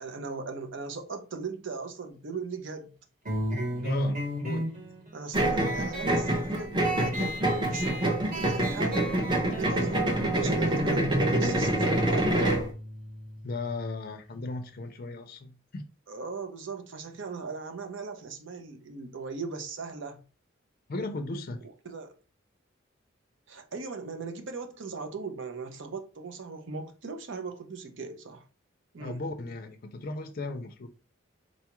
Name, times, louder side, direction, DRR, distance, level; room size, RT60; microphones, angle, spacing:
voice 1, 0.0-2.9 5.1-9.2 9.5-12.4 16.1-20.2 21.6-22.1 23.5-28.4 28.9-29.2, right 4 dB, 70° right, 0.6 m, -39 dB
sound 1, 3.2-14.4, equal, 45° right, 1.2 m, -35 dB
voice 2, 3.8-4.7 13.4-15.8 20.9-21.6 29.0-30.9, left 3 dB, 45° left, 0.4 m, -36 dB
sound 2, 5.3-12.7, right 1 dB, 25° right, 0.5 m, -26 dB
3.9 x 2.3 x 2.9 m
head